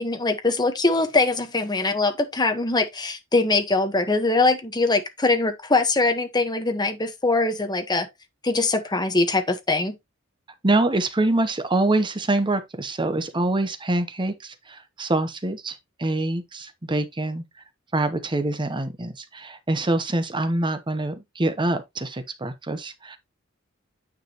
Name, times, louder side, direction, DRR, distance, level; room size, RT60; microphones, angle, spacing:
voice 1, 0.0-8.1 8.4-10.0, left 3 dB, 20° left, 1.1 m, -22 dB
voice 2, 10.6-17.4 17.9-23.2, right 2 dB, 25° right, 0.9 m, -25 dB
9.3 x 5.0 x 2.9 m
head